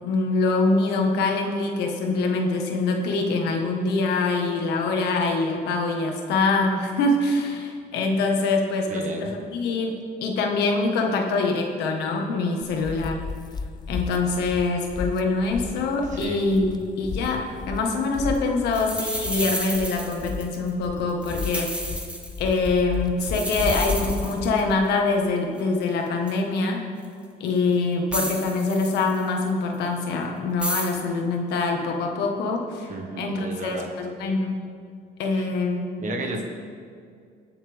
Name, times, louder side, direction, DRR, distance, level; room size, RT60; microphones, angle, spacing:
voice 1, 0.0-13.2 13.9-21.9 22.4-26.8 27.4-32.9 33.2-34.6 35.2-35.8 36.2-36.4, left 3 dB, 80° left, 2 dB, 1.7 m, -24 dB
voice 2, 8.9-9.3 16.1-16.5 32.9-33.9 35.3-35.5 36.0-36.4, right 2 dB, 45° right, 2 dB, 1.7 m, -33 dB
sound 1, 12.6-24.9, left 4 dB, 25° left, 0.5 m, -34 dB
sound 2, 18.4-18.5 18.7-20.7 21.1-22.7 23.2-24.7 25.6-25.7 26.3-26.4 27.0-27.1 28.1-29.4 30.6-31.0, right 1 dB, 5° right, 1.4 m, -31 dB
21.0 x 7.1 x 3.6 m, 2.3 s
cardioid pair, 110°, 17 cm